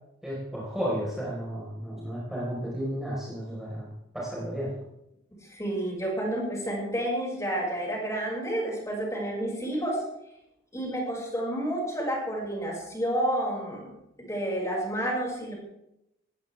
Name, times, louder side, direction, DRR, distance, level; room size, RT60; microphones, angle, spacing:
voice 1, 0.2-4.7, equal, ahead, -7 dB, 4.8 m, -33 dB
voice 2, 5.4-10.1 10.7-13.9 14.2-15.5, right 1 dB, 15° left, -2 dB, 6.2 m, -30 dB
18.5 x 18.5 x 3.6 m, 0.83 s
head